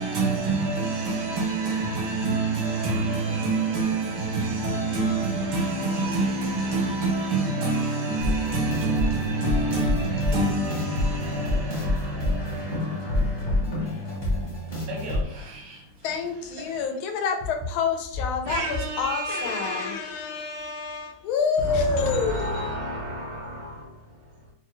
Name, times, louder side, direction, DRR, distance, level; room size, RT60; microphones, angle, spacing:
voice 1, 0.0-15.8, right 3 dB, 80° right, 2.0 m, -27 dB
sound 1, 8.2-15.2, left 1 dB, 25° left, 0.5 m, -28 dB
sound 2, 9.9-14.4, left 3 dB, 65° left, 1.1 m, -45 dB
voice 2, 16.0-22.7, left 5 dB, 80° left, 1.4 m, -28 dB
voice 3, 18.4-20.5 21.6-24.5, right 1 dB, 40° right, 0.6 m, -32 dB
4.5 x 2.1 x 3.0 m
omnidirectional pair, 2.3 m